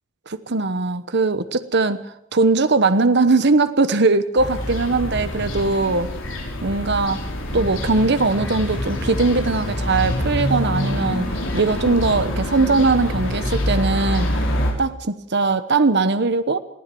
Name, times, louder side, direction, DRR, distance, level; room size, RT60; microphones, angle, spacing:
voice 1, 0.3-2.0 2.3-6.1 6.6-7.2 7.5-14.3 14.8-16.6, right 3 dB, 55° right, 11 dB, 1.1 m, -20 dB
sound 1, 4.4-14.7, equal, 65° left, 5.4 m, -25 dB
22.0 x 16.0 x 7.7 m, 0.76 s
head